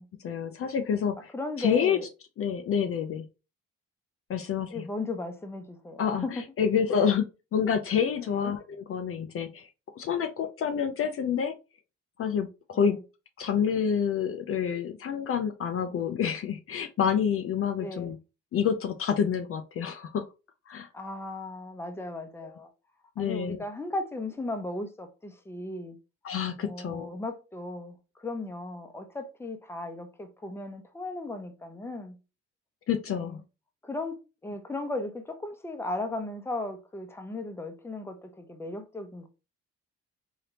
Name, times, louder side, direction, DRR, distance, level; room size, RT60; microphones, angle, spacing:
voice 1, 0.2-1.3 1.6-2.0 2.4-3.2 4.3-4.8 6.0-7.2 7.5-9.7 10.0-11.5 12.2-13.0 13.4-18.2 18.5-20.3 20.7-20.9 23.2-23.6 26.2-27.2 32.9-33.4, left 7 dB, 50° left, 0.5 m, -28 dB
voice 2, 1.3-2.1 2.7-3.0 4.7-6.3 6.9-7.1 8.2-8.5 12.7-13.0 17.8-18.1 20.9-22.7 23.2-26.0 26.6-32.2 33.1-33.4 33.8-34.1 34.4-39.3, left 2 dB, 10° left, 0.7 m, -36 dB
3.3 x 2.7 x 2.8 m
cardioid pair, 90°, 30 cm